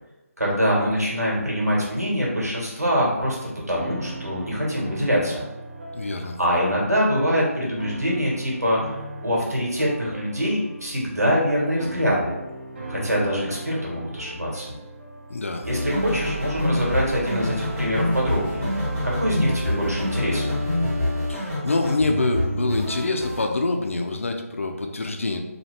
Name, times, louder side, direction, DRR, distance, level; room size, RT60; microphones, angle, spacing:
voice 1, 0.4-3.4 3.7-5.4 6.4-8.8 9.2-12.3 12.9-14.7 15.7-20.5, equal, 85° right, -4 dB, 1.4 m, -24 dB
sound 1, 2.9-19.1, right 2 dB, 45° right, 0.7 m, -40 dB
voice 2, 5.9-6.4 15.3-15.7 21.3-25.4, left 3 dB, 55° left, 4 dB, 0.4 m, -26 dB
sound 2, 15.6-23.4, left 1 dB, 15° right, 1.0 m, -26 dB
2.9 x 2.4 x 3.1 m, 0.97 s
figure-of-eight pair, 155°, 8 cm